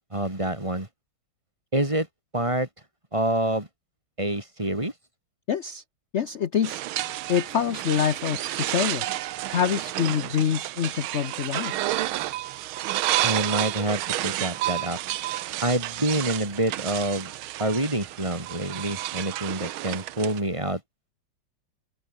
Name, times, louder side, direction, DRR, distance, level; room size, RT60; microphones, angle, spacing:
voice 1, 0.1-0.9 1.7-2.1 2.3-2.7 3.1-3.7 4.2-4.9 13.2-15.0 15.6-17.3 17.6-20.8, right 1 dB, 15° right, 3.1 m, -27 dB
voice 2, 5.5-5.8 6.1-9.1 9.5-11.8, left 8 dB, 60° left, 0.7 m, -26 dB
sound 1, 6.6-20.4, right 15 dB, 85° right, 1.6 m, -30 dB
open air
omnidirectional pair, 2.3 m